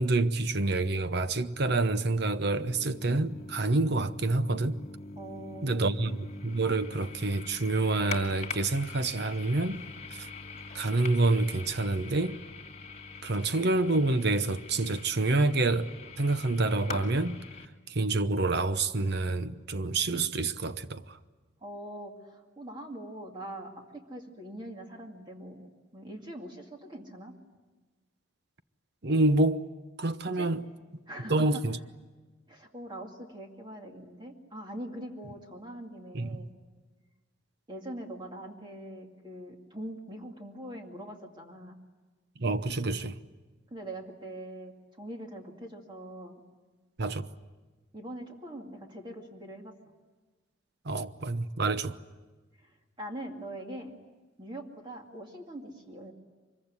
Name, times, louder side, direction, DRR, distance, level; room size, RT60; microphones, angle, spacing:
voice 1, 0.0-4.8 5.6-9.8 10.1-10.3 10.7-12.4 13.2-17.4 17.9-21.2 29.0-29.7 30.0-30.7 31.3-31.8 36.1-36.4 42.4-43.2 47.0-47.3 50.8-52.0, right 2 dB, 60° right, 0.9 m, -27 dB
sound 1, 2.5-17.7, left 4 dB, 35° left, 2.3 m, -43 dB
voice 2, 5.2-6.0 21.6-27.3 30.3-30.5 31.1-31.6 32.5-36.5 37.7-41.8 43.7-46.4 47.9-49.7 52.6-53.9 54.4-56.1, right 1 dB, 25° right, 2.3 m, -43 dB
24.5 x 22.5 x 9.7 m
head